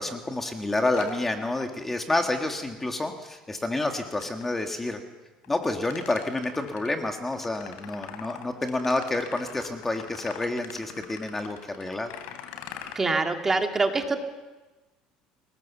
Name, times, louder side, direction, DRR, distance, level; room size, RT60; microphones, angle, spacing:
voice 1, 0.0-5.0 5.5-12.1, left 2 dB, 10° left, 4 dB, 1.7 m, -29 dB
sound 1, 0.9-2.0 3.8-4.7 5.4-12.9, left 10 dB, 85° left, 2.9 m, -44 dB
voice 2, 13.0-14.2, right 3 dB, 15° right, 4 dB, 2.0 m, -24 dB
29.0 x 18.5 x 7.3 m, 1.2 s
cardioid pair, 150°, 2 cm